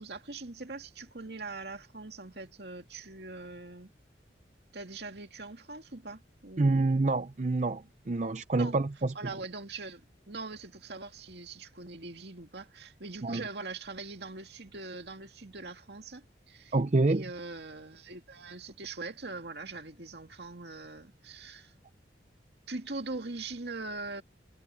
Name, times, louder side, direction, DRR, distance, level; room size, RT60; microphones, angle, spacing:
voice 1, 0.0-3.9 4.7-6.8 8.6-8.7 9.1-16.8 17.0-21.7 22.7-24.2, right 3 dB, 65° right, 2.3 m, -42 dB
voice 2, 6.6-9.1 13.2-13.4 16.7-17.2, right 2 dB, 40° right, 0.5 m, -27 dB
head